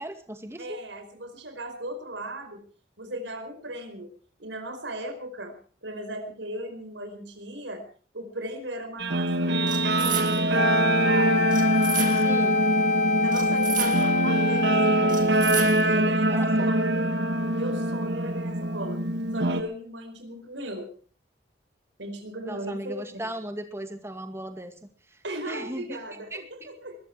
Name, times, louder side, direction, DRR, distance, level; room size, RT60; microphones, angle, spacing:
voice 1, 0.0-0.8 12.1-12.6 16.3-16.7 22.5-24.7 25.1-26.0 26.3-26.7, right 1 dB, 15° right, 6 dB, 2.1 m, -37 dB
voice 2, 0.6-2.6 3.0-4.1 4.4-7.8 8.1-11.5 13.2-15.3 15.8-17.1 17.4-19.0 19.3-20.9 22.0-23.2 25.2-27.0, right 1 dB, 85° right, 7 dB, 4.8 m, -37 dB
Guitar, 9.0-19.6, right 1 dB, 70° right, 1.4 m, -24 dB
sound 1, 9.7-10.6 11.5-12.5 13.3-14.3 15.1-16.1, right 9 dB, 45° right, 2.2 m, -33 dB
Wind instrument woodwind instrument, 10.5-15.7, left 3 dB, 40° left, 0.9 m, -26 dB
21.0 x 14.0 x 4.7 m, 0.41 s
head